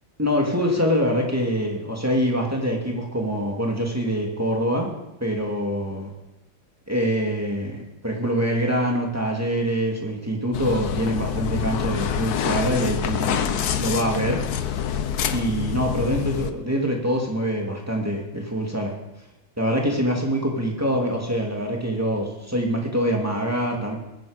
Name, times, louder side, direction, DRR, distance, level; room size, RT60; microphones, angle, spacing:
voice 1, 0.2-4.9 5.2-6.1 6.9-7.8 8.0-13.5 13.8-14.4 15.3-18.9 19.6-24.0, equal, 5° right, -1 dB, 2.4 m, -24 dB
sound 1, 10.5-16.5, left 9 dB, 60° left, 1.1 m, -26 dB
21.5 x 9.5 x 5.2 m, 0.98 s
omnidirectional pair, 2.2 m